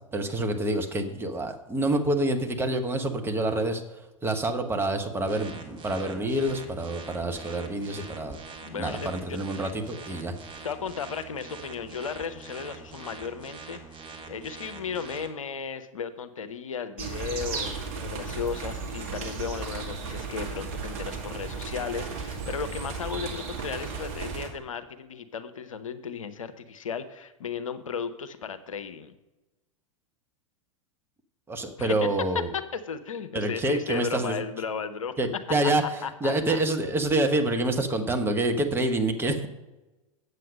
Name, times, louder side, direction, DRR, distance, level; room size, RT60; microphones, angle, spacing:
voice 1, 0.1-3.8 4.2-8.4 8.7-10.3 31.5-32.5 33.3-34.4 35.2-35.8 36.2-39.5, right 1 dB, 15° right, 4 dB, 1.0 m, -27 dB
sound 1, 5.2-15.3, right 4 dB, 30° right, 1.3 m, -44 dB
voice 2, 8.3-9.7 10.6-29.1 31.8-32.2 32.5-35.1 36.0-36.6, left 6 dB, 70° left, 10 dB, 0.7 m, -35 dB
sound 2, 17.0-24.5, right 5 dB, 45° right, 2.1 m, -35 dB
8.0 x 7.6 x 5.2 m, 1.1 s
figure-of-eight pair, 90°, 17 cm